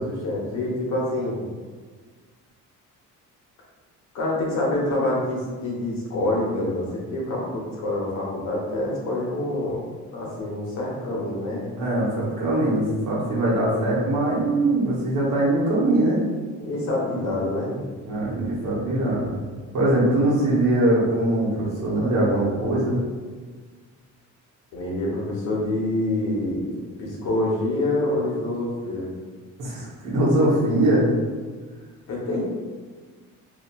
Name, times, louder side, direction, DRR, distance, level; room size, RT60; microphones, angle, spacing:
voice 1, 0.0-1.4 4.1-9.8 10.1-11.7 16.6-17.8 24.7-26.7 27.0-29.1 32.1-32.4, left 1 dB, 65° left, -4 dB, 0.8 m, -26 dB
voice 2, 11.8-16.2 18.1-19.3 19.7-23.0 29.6-31.1, right 1 dB, 70° right, -6 dB, 0.9 m, -22 dB
2.9 x 2.3 x 2.2 m, 1.5 s
cardioid pair, 170°, 30 cm